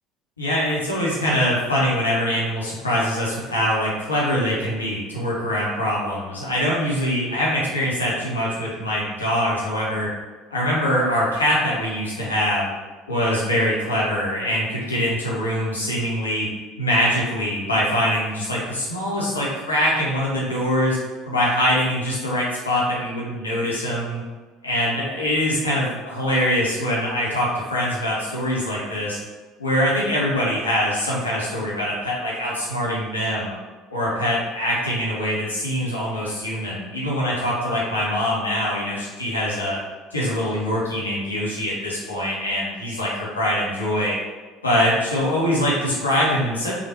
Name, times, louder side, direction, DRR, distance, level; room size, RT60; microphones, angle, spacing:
voice 1, 0.4-10.1 10.5-12.7 13.1-16.5 16.8-21.0 21.2-24.2 24.6-29.2 29.6-33.5 33.9-39.8 40.1-44.2 44.6-46.7, equal, 80° left, -6 dB, 0.7 m, -23 dB
3.2 x 2.4 x 2.8 m, 1.3 s
figure-of-eight pair, 60°, 0 cm